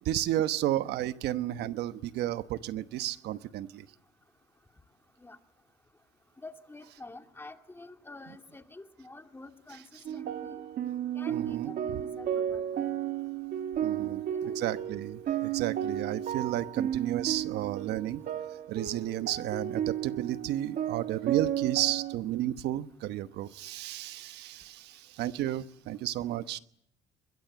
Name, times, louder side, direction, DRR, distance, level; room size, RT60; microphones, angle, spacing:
voice 1, 0.0-3.9 11.3-11.7 13.8-18.2 18.7-26.6, right 13 dB, 80° right, 12 dB, 1.1 m, -32 dB
voice 2, 6.4-9.8 10.1-10.6 11.1-12.9 14.0-14.6, left 2 dB, 15° left, 6 dB, 2.2 m, -48 dB
sound 1, 10.1-22.2, right 10 dB, 60° right, 1.6 m, -33 dB
23.0 x 21.5 x 8.3 m, 0.68 s
cardioid pair, 110°, 17 cm